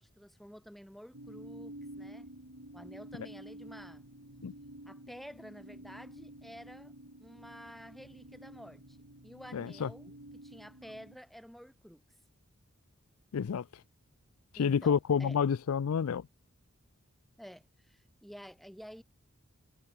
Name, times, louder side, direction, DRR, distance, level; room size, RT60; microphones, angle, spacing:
voice 1, 0.0-2.3 2.7-4.1 4.8-6.9 7.2-9.0 9.2-12.0 14.6-15.4 17.4-19.0, equal, ahead, 5.7 m, -51 dB
sound 1, 1.1-11.2, right 1 dB, 85° right, 5.9 m, -50 dB
voice 2, 9.5-9.9 13.3-13.6 14.6-16.2, left 7 dB, 85° left, 0.4 m, -29 dB
head